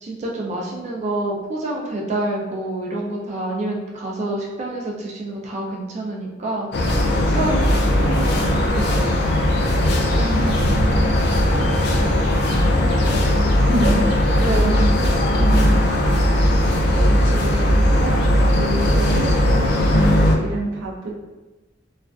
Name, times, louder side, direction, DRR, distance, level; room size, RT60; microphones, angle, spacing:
voice 1, 0.0-9.3 14.3-14.8, right 2 dB, 35° right, -3 dB, 0.4 m, -28 dB
sound 1, 6.7-20.4, left 1 dB, 60° left, 0.4 m, -18 dB
voice 2, 10.1-11.2 11.7-12.2 12.5-14.9 15.4-15.8 16.6-18.2 18.5-21.2, right 2 dB, 85° right, -3 dB, 0.6 m, -28 dB
2.4 x 2.2 x 2.3 m, 1.2 s
head